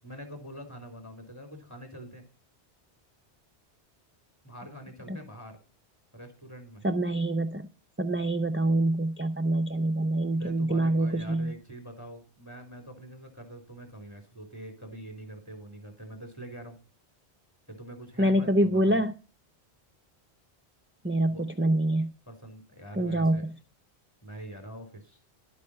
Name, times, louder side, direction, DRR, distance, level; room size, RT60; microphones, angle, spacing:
voice 1, 0.0-2.3 4.4-5.6 6.1-6.9 10.4-16.8 17.7-19.0 21.3-21.5 22.3-23.5 24.2-25.2, right 1 dB, 15° left, 4 dB, 3.4 m, -44 dB
voice 2, 6.8-7.7 8.0-11.5 18.2-19.1 21.0-22.1 23.0-23.4, right 1 dB, 15° right, 5 dB, 0.4 m, -25 dB
11.5 x 8.3 x 5.5 m, 0.36 s
omnidirectional pair, 1.1 m